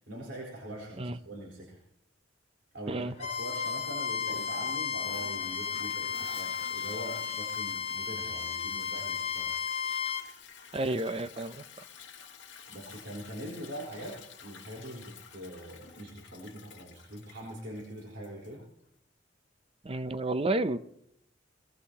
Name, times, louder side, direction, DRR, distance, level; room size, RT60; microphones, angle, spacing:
voice 1, 0.1-1.8 2.7-9.5 12.7-18.6, right 1 dB, 75° right, -3 dB, 4.2 m, -43 dB
Bowed string instrument, 3.2-10.2, left 6 dB, 35° left, 1.2 m, -34 dB
Toilet flush, 4.0-18.7, left 6 dB, 70° left, 1.6 m, -51 dB
voice 2, 10.7-11.6 19.8-20.8, right 2 dB, 30° right, 12 dB, 0.6 m, -30 dB
22.0 x 20.5 x 2.9 m, 0.76 s
head